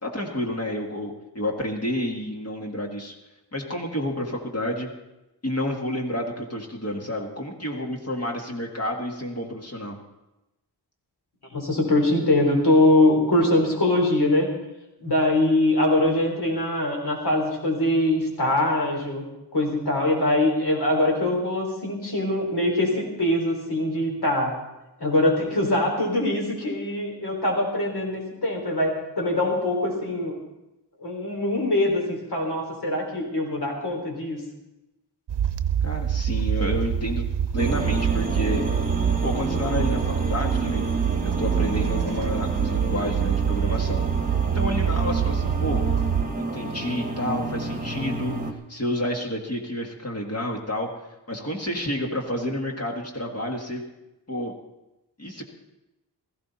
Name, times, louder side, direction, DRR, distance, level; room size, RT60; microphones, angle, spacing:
voice 1, 0.0-3.2 3.5-4.9 5.4-10.0 35.8-37.3 37.5-38.6 39.2-40.8 41.2-44.0 44.5-45.8 46.4-48.3 48.7-50.9 51.3-53.8 54.3-54.5 55.2-55.4, left 1 dB, 35° left, 0 dB, 1.8 m, -30 dB
voice 2, 11.5-14.5 15.0-19.2 19.5-24.5 25.0-30.4 31.0-34.4, left 1 dB, 65° left, 0 dB, 4.1 m, -23 dB
sound 1, 35.3-46.2, right 8 dB, 85° right, 0.8 m, -25 dB
sound 2, 37.6-48.5, right 2 dB, 20° right, 1.3 m, -30 dB
17.0 x 15.0 x 4.2 m, 0.97 s
wide cardioid pair, 145°, 41 cm